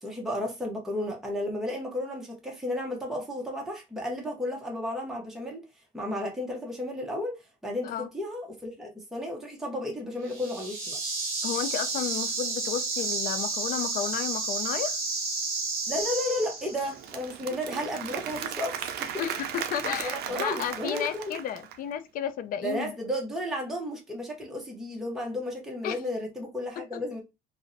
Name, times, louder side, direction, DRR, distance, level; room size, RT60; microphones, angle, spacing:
voice 1, 0.0-5.6 5.9-7.4 7.6-11.0 15.9-19.2 19.5-21.4 22.6-27.2, left 1 dB, ahead, 0.7 m, -33 dB
sound 1, 10.3-17.0, right 3 dB, 40° right, 1.1 m, -31 dB
voice 2, 11.4-15.0 19.2-23.0 25.8-26.0 26.8-27.0, left 9 dB, 55° left, 0.4 m, -32 dB
Applause / Crowd, 16.5-21.9, right 9 dB, 70° right, 0.4 m, -36 dB
2.5 x 2.0 x 2.5 m
cardioid pair, 110°, 17 cm